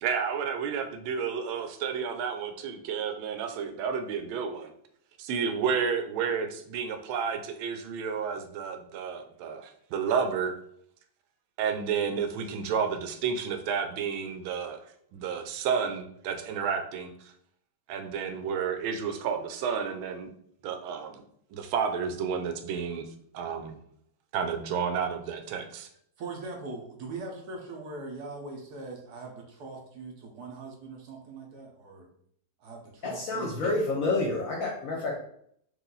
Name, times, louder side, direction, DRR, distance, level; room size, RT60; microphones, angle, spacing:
voice 1, 0.0-4.7 5.2-10.6 11.6-14.8 15.1-17.3 17.9-20.3 20.6-21.2 21.5-23.0 23.3-23.8 24.3-25.9, right 6 dB, 90° right, 6 dB, 1.4 m, -31 dB
voice 2, 26.2-32.1 32.6-33.7, right 3 dB, 60° right, 0 dB, 1.3 m, -41 dB
voice 3, 33.0-35.2, left 2 dB, 55° left, -1 dB, 1.0 m, -29 dB
4.9 x 2.6 x 3.8 m, 0.67 s
omnidirectional pair, 2.2 m